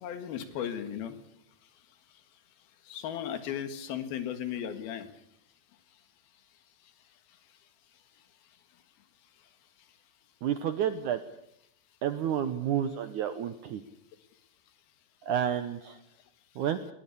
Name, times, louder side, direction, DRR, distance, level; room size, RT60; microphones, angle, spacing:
voice 1, 0.0-1.2 2.9-5.1, left 9 dB, 70° left, 10 dB, 3.5 m, -35 dB
voice 2, 10.4-11.2 12.0-13.8 15.2-16.0 16.6-16.8, right 10 dB, 75° right, 10 dB, 1.9 m, -30 dB
20.5 x 19.0 x 8.4 m, 0.76 s
omnidirectional pair, 4.7 m